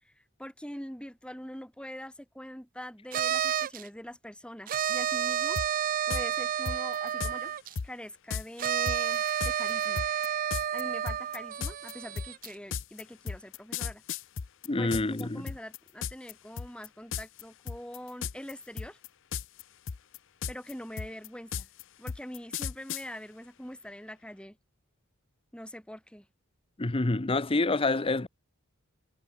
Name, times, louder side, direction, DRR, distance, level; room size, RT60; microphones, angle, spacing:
voice 1, 0.0-7.5 7.8-10.1 10.7-14.0 14.8-19.0 20.5-21.7 22.0-24.6 25.5-26.3, equal, 5° left, 7.5 m, -44 dB
sound 1, 3.1-3.9 4.7-7.7 8.6-12.5, right 9 dB, 40° right, 0.4 m, -30 dB
sound 2, 5.6-5.7 6.1-6.2 6.7-7.3 7.8-7.9 8.3-8.4 8.9-15.2 15.5-16.3 16.6-16.9 17.1-17.4 17.7-18.5 18.8-19.6 19.9-23.0, left 6 dB, 60° left, 0.6 m, -35 dB
voice 2, 14.7-15.5 26.8-28.3, left 2 dB, 25° left, 0.8 m, -27 dB
head